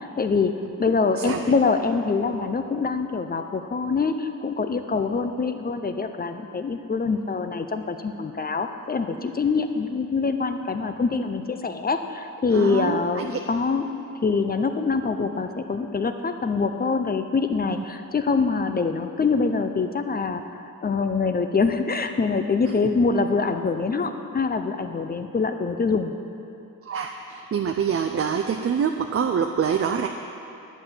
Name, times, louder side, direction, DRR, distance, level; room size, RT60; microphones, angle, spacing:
voice 1, 0.0-13.9 14.2-20.4 20.8-26.1, left 4 dB, 30° left, 8 dB, 0.5 m, -24 dB
voice 2, 12.5-13.3 17.7-17.8 26.8-30.1, right 7 dB, 45° right, 4 dB, 0.5 m, -25 dB
11.0 x 6.1 x 8.1 m, 2.9 s
wide cardioid pair, 155°, 34 cm